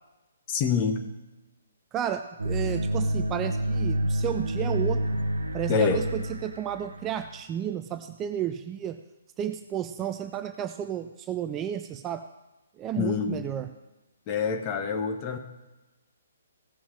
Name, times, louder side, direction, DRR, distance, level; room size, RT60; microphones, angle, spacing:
voice 1, 0.5-1.0 5.7-6.0 13.0-13.5 14.3-15.4, left 5 dB, 25° left, 5 dB, 1.1 m, -26 dB
voice 2, 1.9-5.2 5.5-9.0 9.4-12.3 12.8-13.7, right 10 dB, 20° right, 9 dB, 0.4 m, -32 dB
sound 1, 2.4-7.3, right 1 dB, 70° right, 0.7 m, -29 dB
16.5 x 6.2 x 4.8 m, 1.1 s
figure-of-eight pair, 130°, 0 cm